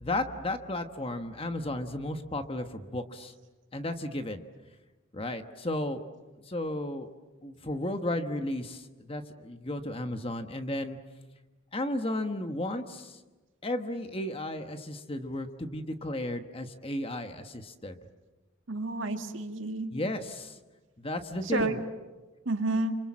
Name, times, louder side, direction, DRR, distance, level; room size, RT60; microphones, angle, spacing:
voice 1, 0.0-3.3 3.7-4.4 5.1-6.0 6.5-7.1 7.4-11.0 11.7-13.2 13.6-18.0 19.9-20.6 21.0-21.8, left 1 dB, 25° left, 7 dB, 1.3 m, -34 dB
voice 2, 18.7-19.9 21.5-21.8 22.5-23.0, right 2 dB, 60° right, 5 dB, 2.0 m, -30 dB
29.0 x 26.0 x 7.5 m, 1.2 s
head